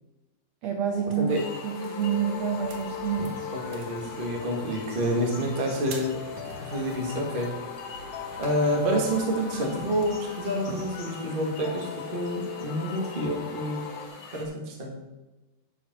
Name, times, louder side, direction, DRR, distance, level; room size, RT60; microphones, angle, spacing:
voice 1, 0.6-1.3 1.6-3.5, right 8 dB, 85° right, 3 dB, 1.5 m, -28 dB
sound 1, 0.9-14.1, left 8 dB, 80° left, 2.7 m, -40 dB
voice 2, 1.1-1.5 3.5-7.5 8.4-13.8 14.3-14.9, equal, 30° right, 0 dB, 0.9 m, -28 dB
sound 2, 1.3-14.4, left 3 dB, 55° left, 3.3 m, -46 dB
sound 3, 1.8-10.8, right 3 dB, 70° right, 2.7 m, -46 dB
10.5 x 5.3 x 6.1 m, 1.1 s
omnidirectional pair, 4.2 m